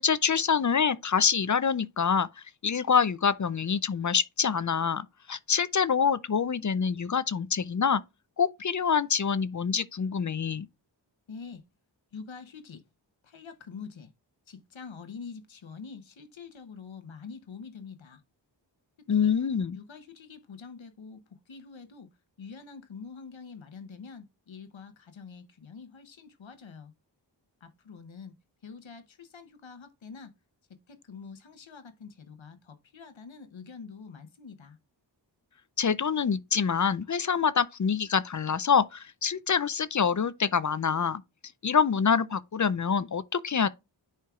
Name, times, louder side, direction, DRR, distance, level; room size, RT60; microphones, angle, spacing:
voice 1, 0.0-8.0 8.4-10.7 19.1-19.8 35.8-41.2 41.6-43.7, left 6 dB, 40° left, 0.5 m, -26 dB
voice 2, 11.3-11.6 12.1-12.8 13.2-14.1 14.5-18.2 19.2-19.4 19.7-22.1 22.4-26.9 27.6-28.3 28.6-30.3 30.9-34.8, left 5 dB, 90° left, 1.0 m, -45 dB
10.5 x 4.5 x 2.3 m
cardioid pair, 40°, 45 cm